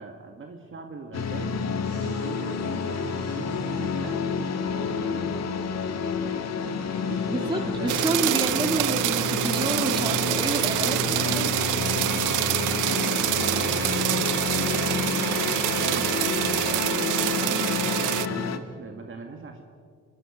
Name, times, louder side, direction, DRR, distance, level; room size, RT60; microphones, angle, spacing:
voice 1, 0.0-1.7 2.0-5.5 6.6-8.1 9.9-12.4 12.7-14.3 14.9-15.4 15.7-17.7 18.1-19.6, right 4 dB, 40° right, 4 dB, 1.8 m, -40 dB
sound 1, 1.1-18.6, left 5 dB, 60° left, 1.6 m, -29 dB
sound 2, 1.8-5.1 5.9-12.1 13.6-14.1, right 5 dB, 60° right, 5.2 m, -49 dB
voice 2, 7.3-11.4, right 2 dB, 15° right, 4 dB, 2.6 m, -29 dB
sound 3, 7.9-18.3, right 17 dB, 85° right, 0.5 m, -26 dB
25.5 x 22.0 x 5.0 m, 2.2 s
cardioid pair, 90°, 30 cm